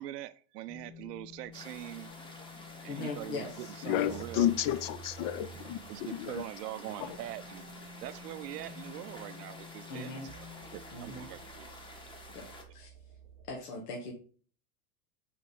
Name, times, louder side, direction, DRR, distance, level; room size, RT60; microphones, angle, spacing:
voice 1, 0.0-2.1 2.8-4.5 5.9-7.6 8.0-10.5 10.7-11.7, right 14 dB, 85° right, 0.6 m, -42 dB
sound 1, 0.7-13.5, equal, 20° right, 0.7 m, -51 dB
sound 2, 1.5-12.6, left 1 dB, 10° left, 1.2 m, -50 dB
voice 2, 2.9-4.2 9.9-10.3 10.9-11.3 12.3-12.5 12.7-12.9 13.5-14.1, left 3 dB, 80° left, 1.9 m, -40 dB
voice 3, 3.8-6.4 7.0-7.2, left 12 dB, 40° left, 0.4 m, -31 dB
6.4 x 4.6 x 3.8 m
supercardioid pair, 130°, 47 cm